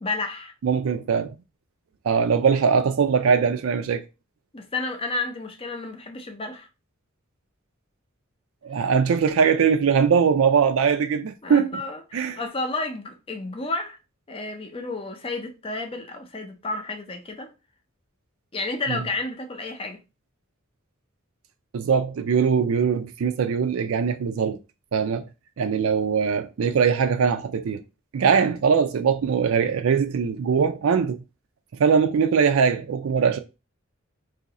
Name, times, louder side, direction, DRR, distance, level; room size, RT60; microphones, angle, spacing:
voice 1, 0.0-0.5 4.5-6.7 11.4-14.0 14.3-17.5 18.5-20.0, left 3 dB, 25° left, 0.5 m, -31 dB
voice 2, 0.6-1.4 2.0-4.1 8.6-11.7 12.1-12.4 18.9-19.0 21.7-24.6 24.9-25.3 25.6-27.8 28.1-31.2 31.8-33.4, right 6 dB, 80° right, 0.4 m, -21 dB
2.7 x 2.6 x 4.0 m
head